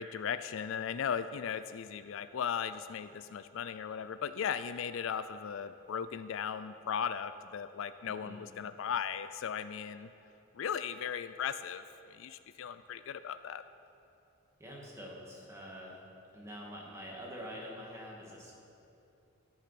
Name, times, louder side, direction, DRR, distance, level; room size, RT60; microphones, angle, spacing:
voice 1, 0.0-10.1 10.5-11.8 12.1-13.6, left 7 dB, 65° left, 12 dB, 0.3 m, -37 dB
voice 2, 8.0-8.5 14.6-16.0 16.3-18.5, equal, 15° right, -3 dB, 2.0 m, -46 dB
13.5 x 8.6 x 5.9 m, 2.9 s
head